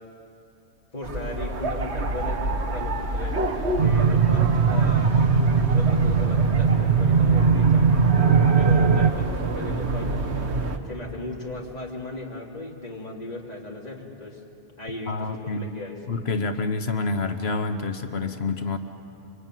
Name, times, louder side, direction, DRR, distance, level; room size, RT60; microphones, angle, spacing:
voice 1, 0.9-5.1 5.7-7.9 8.5-10.3 10.9-14.4 14.8-16.0, left 2 dB, 40° left, -2 dB, 3.1 m, -36 dB
sound 1, 1.0-10.8, right 1 dB, 85° right, 1.8 m, -29 dB
sound 2, 3.8-9.1, right 5 dB, 70° right, 1.2 m, -19 dB
voice 2, 15.1-15.6 16.1-18.8, left 3 dB, 70° left, 7 dB, 1.4 m, -27 dB
26.5 x 23.5 x 9.2 m, 2.7 s
omnidirectional pair, 1.1 m